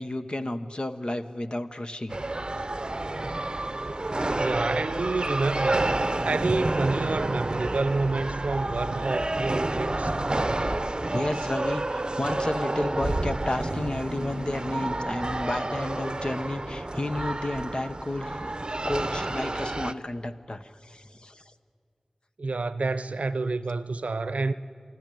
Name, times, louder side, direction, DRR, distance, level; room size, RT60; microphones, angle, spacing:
voice 1, 0.0-2.2 11.1-18.5 18.8-21.4, left 1 dB, 45° left, 1.0 m, -32 dB
sound 1, 2.1-19.9, right 2 dB, 45° right, 0.7 m, -29 dB
sound 2, 3.5-10.8, equal, 60° left, 6.0 m, -42 dB
voice 2, 4.4-10.1 22.4-24.5, right 3 dB, 90° right, 0.6 m, -28 dB
sound 3, 12.2-18.0, right 1 dB, 10° right, 1.5 m, -45 dB
26.0 x 12.5 x 9.1 m
wide cardioid pair, 45°, 2 cm